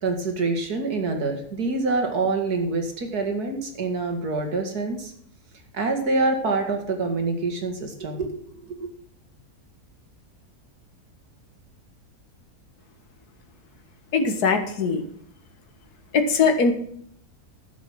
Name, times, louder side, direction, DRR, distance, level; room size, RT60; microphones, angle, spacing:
voice 1, 0.0-5.1 5.7-8.9, right 3 dB, 75° right, 4 dB, 2.6 m, -26 dB
voice 2, 14.1-15.0 16.1-16.7, left 4 dB, 75° left, 7 dB, 2.0 m, -21 dB
11.5 x 7.4 x 6.2 m, 0.66 s
omnidirectional pair, 1.7 m